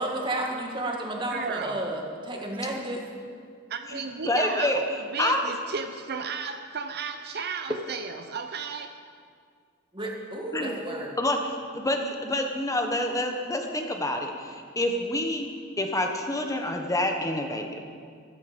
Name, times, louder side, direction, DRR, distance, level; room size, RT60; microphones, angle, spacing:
voice 1, 0.0-3.0 9.9-11.1, right 1 dB, 25° right, 0 dB, 1.9 m, -32 dB
voice 2, 1.3-1.8 3.7-8.9, right 5 dB, 55° right, 7 dB, 0.7 m, -34 dB
voice 3, 4.2-4.8 5.2-5.4 10.5-10.7 11.2-15.5 15.8-17.8, left 1 dB, 15° left, 3 dB, 1.1 m, -27 dB
15.0 x 13.0 x 5.2 m, 2.1 s
head